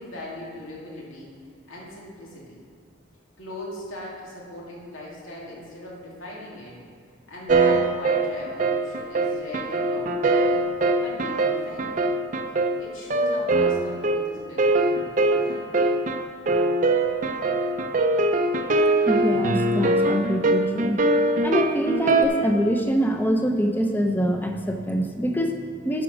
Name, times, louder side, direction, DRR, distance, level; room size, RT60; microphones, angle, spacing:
voice 1, 0.0-1.3 1.7-2.6 3.4-6.8 7.3-10.5 10.9-12.0 12.8-15.7, left 1 dB, 90° left, -5 dB, 2.6 m, -39 dB
sound 1, 7.5-22.3, right 2 dB, 40° right, 0.5 m, -22 dB
voice 2, 19.0-21.0 21.4-26.0, equal, 10° left, 4 dB, 0.6 m, -24 dB
11.0 x 5.0 x 6.1 m, 2.3 s
head